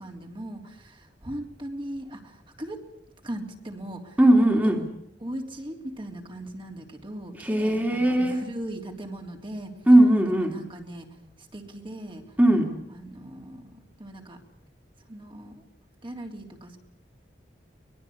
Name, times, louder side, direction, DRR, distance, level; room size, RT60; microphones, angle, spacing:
voice 1, 0.0-2.8 3.2-4.2 4.5-4.7 5.2-9.7 10.3-11.1 11.5-12.2 12.9-13.6 14.0-14.4 15.1-15.6 16.0-16.8, right 1 dB, 30° right, 3 dB, 3.2 m, -38 dB
voice 2, 4.2-4.8 7.4-8.4 9.9-10.5 12.4-12.7, right 1 dB, 10° right, 2 dB, 2.8 m, -19 dB
24.0 x 21.0 x 8.5 m, 0.77 s
head